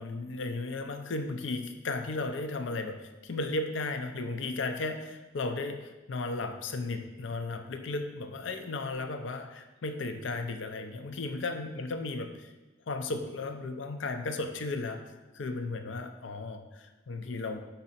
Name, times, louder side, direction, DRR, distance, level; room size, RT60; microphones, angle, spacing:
voice 1, 0.0-12.5 12.9-17.6, left 3 dB, 70° left, 7 dB, 0.5 m, -35 dB
5.3 x 4.8 x 4.2 m, 1.1 s
head